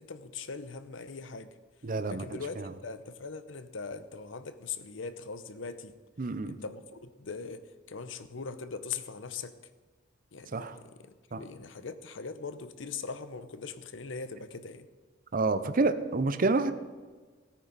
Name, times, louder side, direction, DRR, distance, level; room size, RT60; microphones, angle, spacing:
voice 1, 0.0-1.5 2.1-5.9 6.5-9.6 10.3-14.9, left 5 dB, 75° left, 12 dB, 0.8 m, -41 dB
voice 2, 1.8-2.7 6.2-6.6 10.5-10.8 11.3-11.4 15.3-16.7, right 3 dB, 45° right, 10 dB, 0.6 m, -29 dB
18.0 x 9.2 x 4.1 m, 1.4 s
head